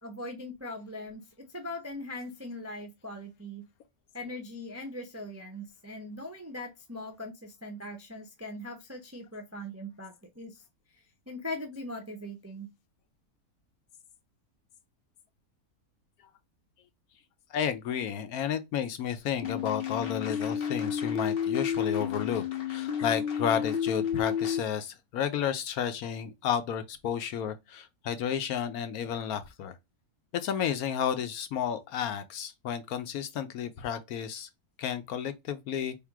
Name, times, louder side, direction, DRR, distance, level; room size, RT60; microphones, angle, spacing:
voice 1, 0.0-3.7 4.1-10.6 10.9-12.7, left 1 dB, 20° right, 0.4 m, -40 dB
voice 2, 17.5-29.8 30.3-34.5 34.8-36.0, left 8 dB, 75° left, 1.2 m, -32 dB
sound 1, 19.4-24.6, left 8 dB, 55° left, 0.7 m, -31 dB
3.6 x 2.5 x 4.6 m
omnidirectional pair, 1.6 m